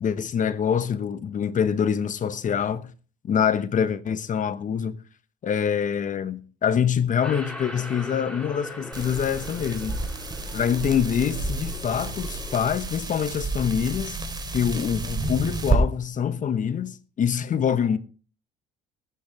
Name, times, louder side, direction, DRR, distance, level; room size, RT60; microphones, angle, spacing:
voice 1, 0.0-2.9 3.3-5.0 5.4-10.0 10.5-14.2 14.5-18.0, left 8 dB, 45° left, 1.0 m, -25 dB
sound 1, 7.2-12.7, left 1 dB, 5° left, 7.9 m, -40 dB
sound 2, 8.9-15.8, right 3 dB, 20° right, 3.6 m, -30 dB
19.5 x 9.0 x 3.5 m
supercardioid pair, 70°, 19 cm